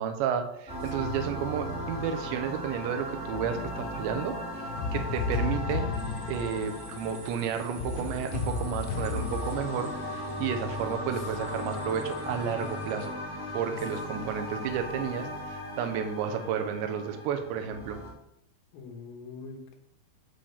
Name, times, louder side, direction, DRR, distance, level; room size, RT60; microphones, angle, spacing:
voice 1, 0.0-4.4 4.9-5.9 6.3-13.1 13.5-18.0, right 8 dB, 80° right, 7 dB, 3.1 m, -32 dB
sound 1, 0.7-18.1, left 1 dB, 5° right, 1.1 m, -37 dB
sound 2, 3.3-9.7, left 4 dB, 85° left, 3.0 m, -34 dB
sound 3, 5.9-13.1, right 5 dB, 60° right, 3.0 m, -50 dB
voice 2, 18.7-19.7, left 5 dB, 65° left, 2 dB, 2.8 m, -44 dB
8.7 x 7.5 x 3.4 m, 0.76 s
omnidirectional pair, 5.4 m